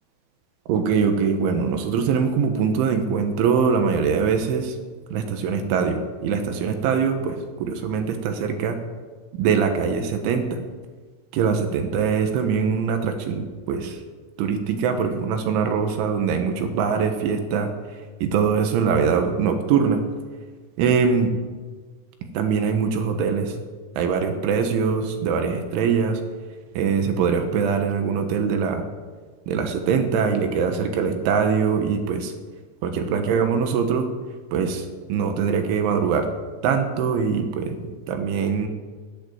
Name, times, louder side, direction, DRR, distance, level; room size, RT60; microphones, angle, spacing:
voice 1, 0.7-4.8 5.1-8.8 9.4-10.6 11.3-14.0 14.4-17.7 18.2-20.0 20.8-21.3 22.4-23.6 24.0-26.2 26.8-28.8 29.5-32.3 32.8-34.1 34.5-36.3 36.6-37.8 38.1-38.7, right 6 dB, 75° right, 6 dB, 3.5 m, -22 dB
13.0 x 9.4 x 9.4 m, 1.4 s
omnidirectional pair, 5.8 m